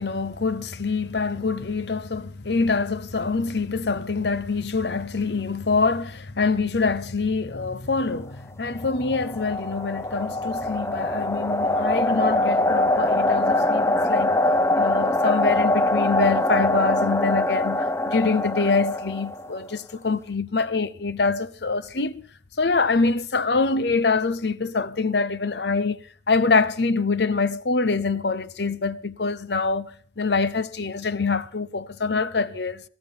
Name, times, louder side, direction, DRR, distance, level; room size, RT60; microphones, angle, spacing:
voice 1, 0.0-14.4 14.8-22.2 22.6-32.8, left 4 dB, 75° left, 0.9 m, -25 dB
sound 1, 8.8-19.6, left 1 dB, 15° left, 0.6 m, -23 dB
19.5 x 14.0 x 4.4 m
head